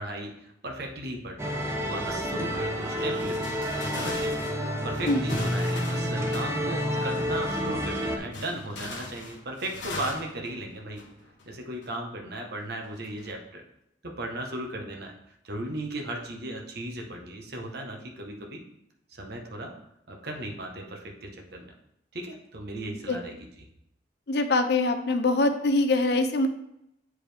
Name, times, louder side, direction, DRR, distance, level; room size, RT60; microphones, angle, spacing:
voice 1, 0.0-1.5 1.9-3.5 3.9-4.4 4.8-11.0 11.5-13.6 14.0-15.1 15.4-18.6 19.1-19.7 20.1-21.7 22.1-23.5, right 1 dB, 60° right, 1 dB, 1.2 m, -36 dB
sound 1, 1.4-8.2, equal, 15° right, 0.7 m, -29 dB
sound 2, 3.0-7.1 8.3-11.4 11.8-12.0 12.9-13.3, left 2 dB, 80° left, 1.2 m, -40 dB
voice 2, 24.3-26.5, left 2 dB, 65° left, 8 dB, 0.6 m, -23 dB
8.3 x 4.8 x 3.5 m, 0.79 s
head